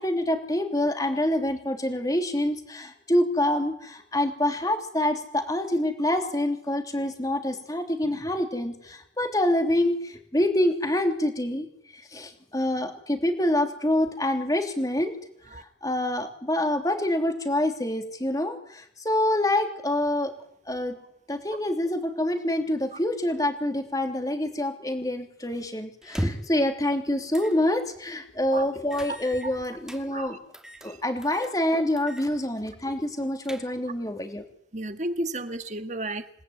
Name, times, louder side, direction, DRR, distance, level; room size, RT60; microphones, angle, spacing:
voice 1, 0.0-11.7 11.9-15.1 15.5-20.3 20.7-21.0 21.3-30.4 30.8-34.4, left 1 dB, 20° left, 5 dB, 3.2 m, -26 dB
sound 1, 26.0-26.6 27.3-27.6 28.0-28.1 28.9-30.0 30.5-30.9 31.2-31.5 32.0-32.3 32.6-32.7 33.2-34.0, equal, 5° right, 2.6 m, -35 dB
voice 2, 34.7-36.3, right 1 dB, 40° right, 9 dB, 1.7 m, -33 dB
28.0 x 19.0 x 9.5 m, 0.70 s
head